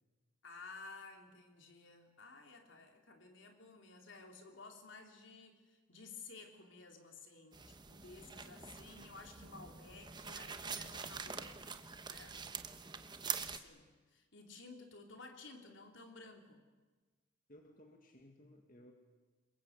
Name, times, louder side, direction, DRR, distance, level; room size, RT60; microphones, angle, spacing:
voice 1, 0.4-11.8 12.1-12.4 13.2-16.6, left 3 dB, 70° left, 3 dB, 3.7 m, -55 dB
sound 1, 7.5-13.6, right 6 dB, 20° right, 1.1 m, -45 dB
voice 2, 17.5-18.9, left 1 dB, 40° left, 3 dB, 2.1 m, -59 dB
27.5 x 22.5 x 8.3 m, 1.3 s
head